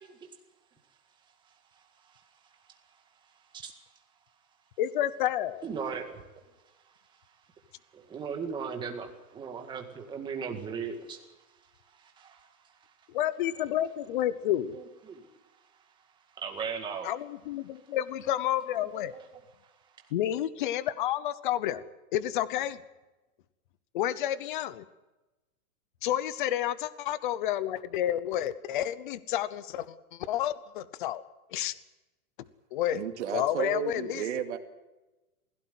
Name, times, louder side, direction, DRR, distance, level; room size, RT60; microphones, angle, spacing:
voice 1, 4.8-5.6 13.1-14.8 17.0-19.1 20.1-21.8 22.1-22.8 23.9-24.8 26.0-31.2 31.5-31.7 32.7-33.0 33.3-34.2, left 12 dB, 35° left, 0.9 m, -30 dB
voice 2, 5.6-6.2 7.9-11.2 12.0-12.5 13.6-14.2 14.7-15.3 16.4-17.1 18.9-19.3, right 6 dB, 10° right, 1.9 m, -38 dB
voice 3, 32.9-34.6, right 10 dB, 50° right, 2.5 m, -33 dB
21.0 x 16.5 x 9.4 m
hypercardioid pair, 170°, 44 cm